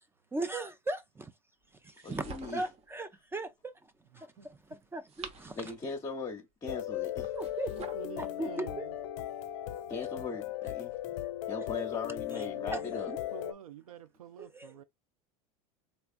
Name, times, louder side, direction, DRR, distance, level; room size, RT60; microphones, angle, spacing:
voice 1, 0.3-1.3 1.8-2.3 2.5-3.7 4.1-5.7 7.3-7.7 8.0-8.9 11.2-11.3 11.8-11.9 12.3-12.4 12.7-12.8 13.1-13.2 14.4-14.8, right 2 dB, 15° right, 0.4 m, -38 dB
sound 1, 1.8-2.9 4.8-6.0 7.2-8.1, right 4 dB, 35° right, 0.9 m, -47 dB
voice 2, 2.0-2.6 4.2-4.3 5.5-7.3 9.9-11.0 11.5-13.1, left 4 dB, 25° left, 0.8 m, -39 dB
sound 2, 6.7-13.5, left 13 dB, 65° left, 0.4 m, -37 dB
voice 3, 7.7-9.0 12.3-14.8, right 9 dB, 85° right, 0.4 m, -48 dB
3.3 x 3.0 x 2.4 m
hypercardioid pair, 85°, 17 cm